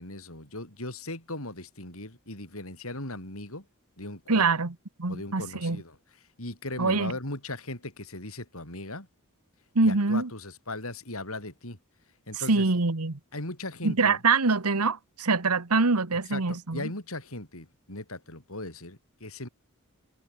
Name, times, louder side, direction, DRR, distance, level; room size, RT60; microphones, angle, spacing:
voice 1, 0.0-3.6 4.0-4.5 5.1-6.0 6.4-9.1 9.8-11.8 12.3-12.7 13.3-14.2 16.3-19.5, left 2 dB, 70° left, 7.1 m, -38 dB
voice 2, 4.3-5.8 6.8-7.1 9.7-10.3 12.5-13.2 13.8-16.9, right 4 dB, 85° right, 1.4 m, -24 dB
head